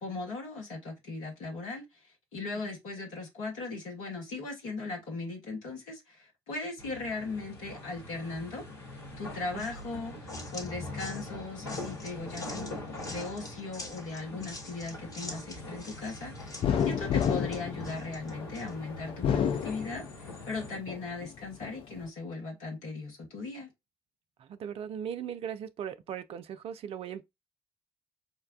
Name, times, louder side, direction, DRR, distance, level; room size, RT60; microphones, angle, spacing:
voice 1, 0.0-1.8 2.3-8.6 9.2-12.7 13.1-23.7, left 3 dB, 65° left, 1.2 m, -38 dB
sound 1, 6.8-20.8, left 2 dB, 80° left, 0.8 m, -43 dB
sound 2, 9.6-18.7, left 2 dB, 30° left, 1.2 m, -46 dB
sound 3, 16.6-18.5 19.1-20.4 20.9-21.8, left 8 dB, 45° left, 0.4 m, -29 dB
voice 2, 24.4-27.2, right 8 dB, 50° right, 0.5 m, -38 dB
4.9 x 2.2 x 2.2 m
figure-of-eight pair, 40°, 13 cm